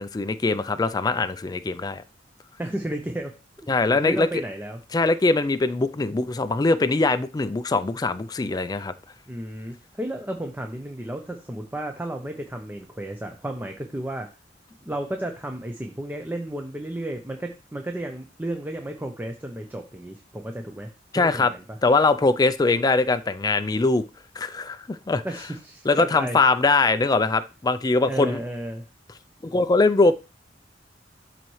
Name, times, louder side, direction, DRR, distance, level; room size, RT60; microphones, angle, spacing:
voice 1, 0.0-2.0 3.7-4.3 4.9-8.9 21.1-21.5 21.8-24.0 24.4-25.2 25.9-28.4 29.4-30.1, left 3 dB, 20° left, 0.4 m, -22 dB
voice 2, 2.6-3.4 4.0-4.8 9.3-14.3 14.8-21.8 25.2-26.4 28.1-28.8, right 1 dB, 10° right, 0.6 m, -33 dB
12.5 x 4.1 x 3.1 m
head